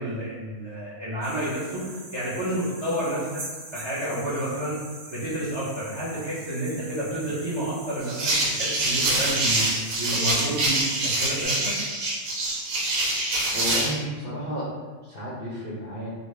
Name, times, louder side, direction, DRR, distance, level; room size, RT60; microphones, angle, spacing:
voice 1, 0.0-1.8 2.1-3.2 3.7-4.8 5.1-9.6 10.0-11.6, right 1 dB, 40° right, -9 dB, 0.3 m, -30 dB
sound 1, 1.2-11.4, right 2 dB, 60° right, 1.1 m, -43 dB
sound 2, 8.1-14.0, right 2 dB, 80° right, 1.4 m, -25 dB
voice 2, 13.5-16.1, equal, 90° left, -9 dB, 0.4 m, -32 dB
3.8 x 2.1 x 3.2 m, 1.4 s
omnidirectional pair, 1.8 m